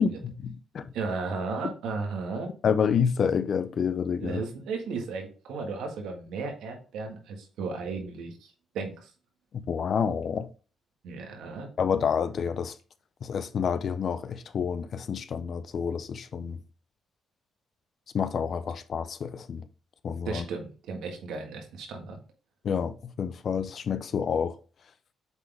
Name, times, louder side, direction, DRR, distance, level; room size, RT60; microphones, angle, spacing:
voice 1, 0.0-0.9 2.6-4.4 9.5-10.5 11.8-12.8 13.2-16.6 18.1-19.7 20.0-20.4 22.6-24.6, left 7 dB, 55° left, 0.5 m, -28 dB
voice 2, 0.9-2.5 4.2-9.1 11.0-11.7 20.2-22.2, right 4 dB, 85° right, 1.7 m, -35 dB
8.0 x 4.0 x 3.4 m
cardioid pair, 90°, 0 cm